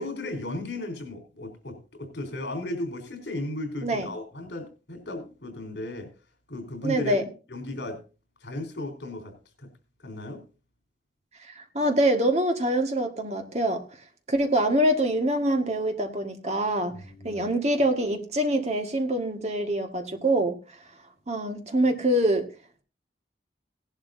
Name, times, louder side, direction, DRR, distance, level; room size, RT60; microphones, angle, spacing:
voice 1, 0.0-6.1 6.5-7.2 7.5-8.0 8.4-9.3 9.6-9.7 10.0-10.4 17.0-17.5, left 1 dB, 70° left, 6 dB, 4.1 m, -35 dB
voice 2, 6.8-7.2 11.4-13.8 14.3-16.9 17.2-20.6 21.3-22.4, right 1 dB, 35° right, 5 dB, 1.8 m, -25 dB
17.5 x 11.5 x 2.7 m, 0.33 s
head